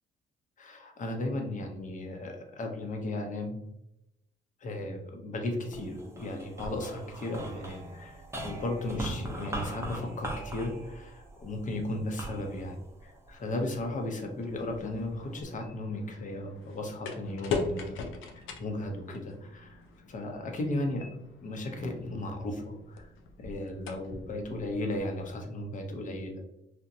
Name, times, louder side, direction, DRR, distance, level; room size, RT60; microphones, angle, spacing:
voice 1, 0.6-3.6 4.6-12.8 13.0-18.0 18.6-19.8 20.1-21.1 21.4-23.1 23.4-26.3, left 1 dB, 40° left, 3 dB, 0.7 m, -35 dB
sound 1, 5.6-14.1 14.7-15.4, right 1 dB, 15° right, 0.6 m, -41 dB
sound 2, 14.4-25.3, left 4 dB, 80° left, 0.4 m, -41 dB
2.8 x 2.1 x 2.5 m, 0.83 s
cardioid pair, 90°, 20 cm